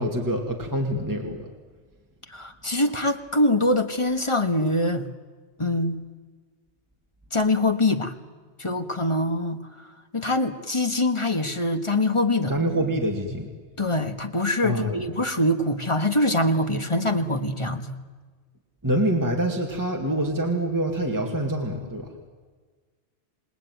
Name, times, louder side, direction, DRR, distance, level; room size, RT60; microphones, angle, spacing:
voice 1, 0.0-1.5 12.5-13.5 14.6-15.0 18.8-22.1, right 1 dB, 15° right, 1 dB, 2.3 m, -26 dB
voice 2, 2.3-5.1 5.6-6.0 7.3-8.1 8.6-12.6 13.8-18.0, left 1 dB, 25° left, 6 dB, 1.6 m, -24 dB
28.5 x 19.5 x 9.4 m, 1.5 s
omnidirectional pair, 1.2 m